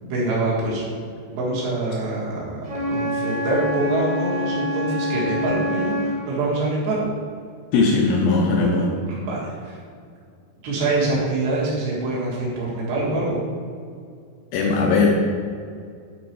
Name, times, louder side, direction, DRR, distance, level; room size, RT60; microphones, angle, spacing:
voice 1, 0.0-0.9 1.3-2.6 2.9-7.0 9.1-9.8 10.6-13.4, right 2 dB, 75° right, -5 dB, 4.0 m, -25 dB
Wind instrument woodwind instrument, 2.6-6.2, left 1 dB, 55° right, 2.2 m, -26 dB
voice 2, 7.7-9.0 14.5-15.1, left 4 dB, 80° left, -1 dB, 2.1 m, -19 dB
9.5 x 4.2 x 4.7 m, 2.3 s
omnidirectional pair, 5.1 m